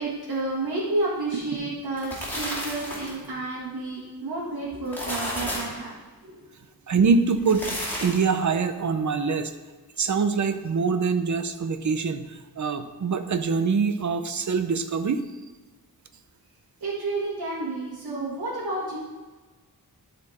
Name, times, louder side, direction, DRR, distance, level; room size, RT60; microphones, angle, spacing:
voice 1, 0.0-6.0 6.2-6.5 16.8-19.0, right 2 dB, 75° right, -8 dB, 1.8 m, -30 dB
sound 1, 1.8-3.3 4.7-5.8 7.3-8.3, left 1 dB, 5° left, 2.5 m, -32 dB
voice 2, 6.9-7.7 8.0-9.5 10.0-15.2, right 5 dB, 50° right, 9 dB, 0.7 m, -24 dB
12.5 x 4.3 x 4.2 m, 1.3 s
wide cardioid pair, 115°, 38 cm